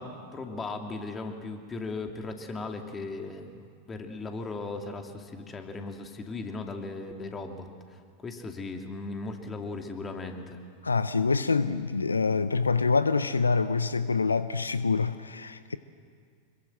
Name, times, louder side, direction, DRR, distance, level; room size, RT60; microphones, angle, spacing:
voice 1, 0.0-10.6, left 3 dB, 20° left, 2.6 m, -37 dB
voice 2, 10.8-15.8, left 4 dB, 85° left, 0.6 m, -26 dB
25.5 x 22.0 x 7.9 m
figure-of-eight pair, 90°, 0 cm